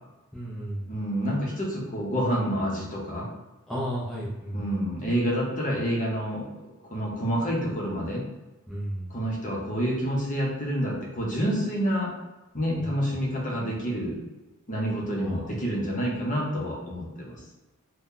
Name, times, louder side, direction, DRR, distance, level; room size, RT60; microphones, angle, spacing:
voice 1, 0.3-0.9 3.7-4.7 8.7-9.1 12.7-12.9 15.2-15.5, equal, ahead, -8 dB, 0.6 m, -33 dB
voice 2, 0.9-3.3 4.5-6.5 6.9-8.2 9.1-12.1 12.5-14.2 14.7-17.4, equal, 35° left, -3 dB, 0.8 m, -28 dB
2.8 x 2.2 x 3.7 m, 1.1 s
head